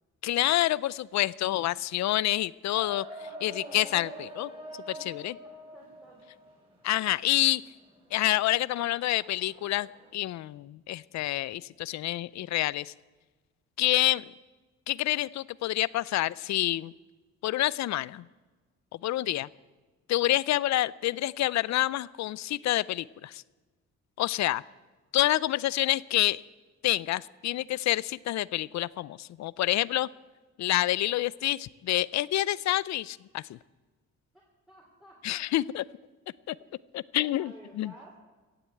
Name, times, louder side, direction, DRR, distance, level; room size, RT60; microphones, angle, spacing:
voice 1, 0.2-3.0 3.4-4.5 4.9-5.4 6.8-7.6 8.1-12.9 13.8-14.3 14.9-16.9 17.4-18.2 19.0-19.5 20.1-23.4 24.2-24.6 25.1-26.4 26.8-30.1 30.6-33.6 35.2-35.8 36.5-36.6 36.9-37.9, left 15 dB, 65° left, 21 dB, 0.5 m, -28 dB
sound 1, 2.7-10.1, right 1 dB, 20° right, 6.7 m, -45 dB
voice 2, 5.4-6.2 34.7-35.5 36.6-36.8 37.2-38.2, right 1 dB, ahead, -3 dB, 3.6 m, -53 dB
17.0 x 7.9 x 8.5 m, 1.3 s
cardioid pair, 90°, 30 cm